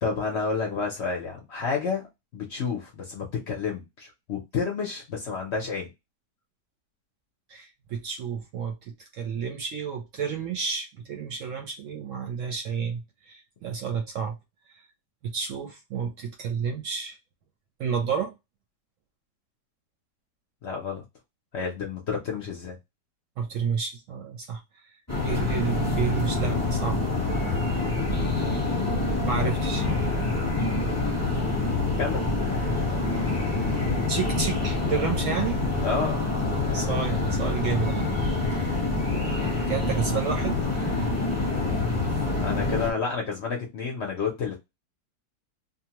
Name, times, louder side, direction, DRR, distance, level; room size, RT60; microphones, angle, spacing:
voice 1, 0.0-2.1 2.3-5.9 20.6-21.0 21.5-22.8 32.0-32.3 35.8-36.2 42.4-44.6, left 5 dB, 55° left, 0.8 m, -30 dB
voice 2, 7.5-8.8 9.1-14.3 14.7-14.8 15.2-17.2 17.8-18.3 23.4-24.6 24.9-25.0 25.2-27.0 29.3-29.9 34.1-35.6 36.7-38.1 38.5-38.6 39.7-41.1 42.7-42.8, right 6 dB, 65° right, 0.8 m, -30 dB
sound 1, 25.1-42.9, left 3 dB, 15° left, 0.8 m, -26 dB
2.8 x 2.1 x 2.9 m
omnidirectional pair, 1.7 m